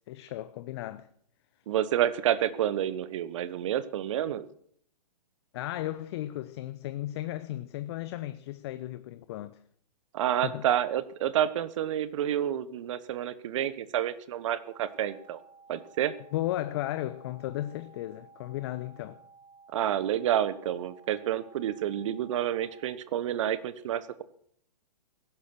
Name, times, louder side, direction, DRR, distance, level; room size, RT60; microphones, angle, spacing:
voice 1, 0.1-1.1 5.5-9.6 10.4-10.7 16.3-19.2, left 14 dB, 40° left, 0.9 m, -35 dB
voice 2, 1.7-4.5 10.1-15.4 15.7-16.1 19.7-24.2, right 11 dB, 50° right, 1.3 m, -29 dB
sound 1, 14.5-22.9, right 4 dB, ahead, 5.7 m, -56 dB
16.5 x 12.0 x 6.1 m
figure-of-eight pair, 125°, 21 cm